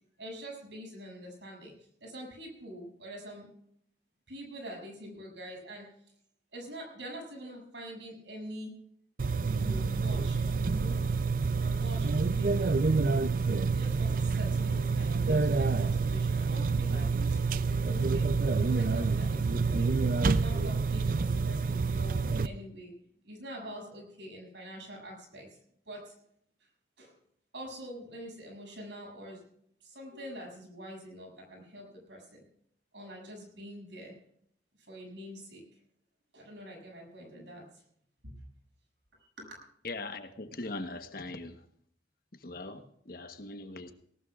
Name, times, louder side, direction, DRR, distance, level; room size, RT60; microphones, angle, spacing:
voice 1, 0.2-3.5 4.3-5.9 6.5-8.7 9.5-11.2 11.6-13.2 13.7-17.1 17.5-19.9 20.3-22.9 23.2-25.6 25.9-26.1 27.0-27.1 27.5-29.4 29.8-32.4 32.9-34.2 34.8-35.8 36.3-37.8 38.2-38.4 39.4-39.6, equal, 85° right, 0 dB, 7.3 m, -45 dB
sound 1, 9.2-22.5, right 4 dB, 50° right, 0.5 m, -28 dB
voice 2, 39.8-41.6 42.4-43.9, left 2 dB, 55° left, 8 dB, 1.2 m, -40 dB
19.0 x 18.5 x 2.5 m, 0.68 s
head